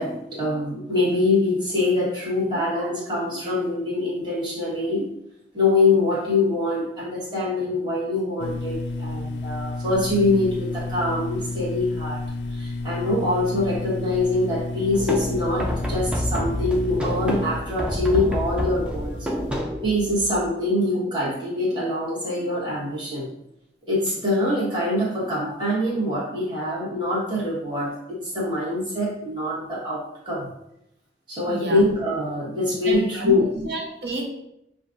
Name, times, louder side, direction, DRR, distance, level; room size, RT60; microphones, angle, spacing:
voice 1, 0.0-5.1 5.5-12.2 12.5-19.3 19.8-23.3 23.9-30.5 31.3-33.6, left 2 dB, 25° right, -7 dB, 1.3 m, -24 dB
sound 1, 8.4-19.6, left 2 dB, 80° left, 0.3 m, -32 dB
sound 2, 14.9-20.5, equal, 5° right, 0.4 m, -28 dB
voice 2, 31.5-31.8 32.8-34.3, right 2 dB, 70° right, 0 dB, 0.8 m, -30 dB
7.1 x 2.4 x 2.5 m, 0.81 s
head